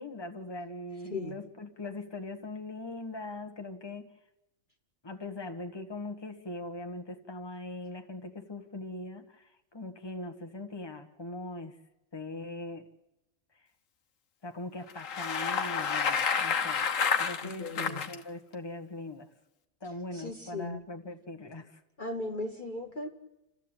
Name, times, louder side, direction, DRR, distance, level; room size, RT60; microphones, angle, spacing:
voice 1, 0.0-4.1 5.0-11.8 12.1-12.9 13.6-13.7 14.4-16.8 17.2-19.3 19.8-21.8, left 2 dB, 20° left, 5 dB, 1.4 m, -41 dB
Bicycle, 14.9-18.2, left 6 dB, 70° left, 1.5 m, -29 dB
voice 2, 17.4-18.0 20.1-20.8 22.0-23.1, left 2 dB, 40° left, 2 dB, 1.4 m, -37 dB
29.0 x 13.5 x 9.0 m, 0.96 s
omnidirectional pair, 1.4 m